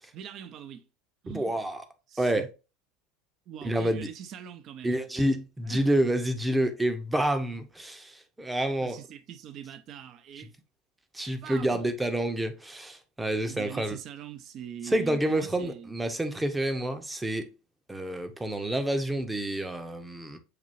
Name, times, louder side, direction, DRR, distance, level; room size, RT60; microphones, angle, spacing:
voice 1, 0.1-0.9 1.2-1.6 2.1-2.5 3.5-5.1 5.6-5.9 8.8-10.5 11.4-11.9 13.4-16.0, right 8 dB, 45° right, 0.7 m, -43 dB
voice 2, 1.3-1.8 2.2-2.5 3.6-4.1 4.8-9.0 10.4-10.5 11.1-14.0 14.8-17.5 17.9-20.4, right 1 dB, 10° right, 0.8 m, -28 dB
6.7 x 2.7 x 2.6 m
hypercardioid pair, 80°, 0 cm